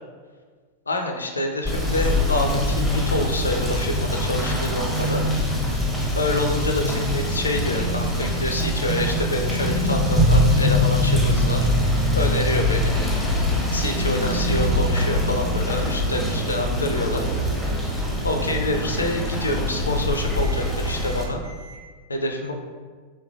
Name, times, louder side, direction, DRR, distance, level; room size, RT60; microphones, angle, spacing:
voice 1, 0.9-5.2 6.1-11.7 12.1-13.0 13.7-17.2 18.2-21.4 22.1-22.5, left 1 dB, 75° left, 3 dB, 0.4 m, -27 dB
Rain / Motor vehicle (road), 1.6-21.2, left 1 dB, ahead, 0.7 m, -23 dB
Microwave oven, 10.3-21.8, right 1 dB, 55° right, 0.8 m, -40 dB
3.4 x 3.1 x 2.3 m, 1.5 s
figure-of-eight pair, 90°, 0 cm